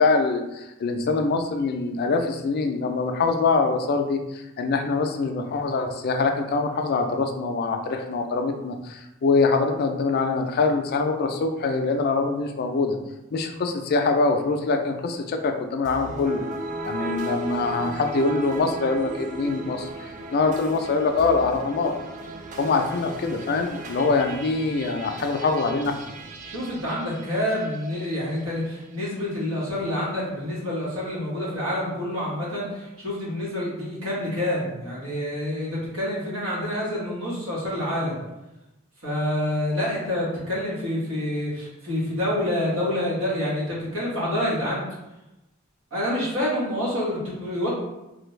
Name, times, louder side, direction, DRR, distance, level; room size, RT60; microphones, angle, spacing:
voice 1, 0.0-4.2 4.6-13.0 13.3-16.4 16.8-19.9 20.3-21.9 22.6-26.0, left 4 dB, 50° left, 5 dB, 0.3 m, -24 dB
sound 1, 15.8-28.2, right 2 dB, 40° right, 0.3 m, -36 dB
voice 2, 26.4-38.2 39.0-44.8 45.9-47.7, left 1 dB, 90° right, -6 dB, 1.3 m, -27 dB
3.3 x 2.2 x 3.1 m, 0.95 s
head